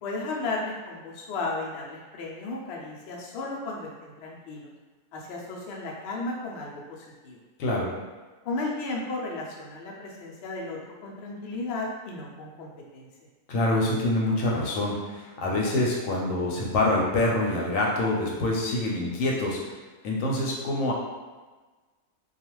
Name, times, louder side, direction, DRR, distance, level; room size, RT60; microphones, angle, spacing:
voice 1, 0.0-4.7 5.1-7.4 8.4-13.1, left 2 dB, 90° left, -3 dB, 0.5 m, -34 dB
voice 2, 7.6-7.9 13.5-19.6 20.0-20.9, left 1 dB, 70° left, -3 dB, 0.9 m, -26 dB
2.4 x 2.3 x 3.0 m, 1.3 s
omnidirectional pair, 1.7 m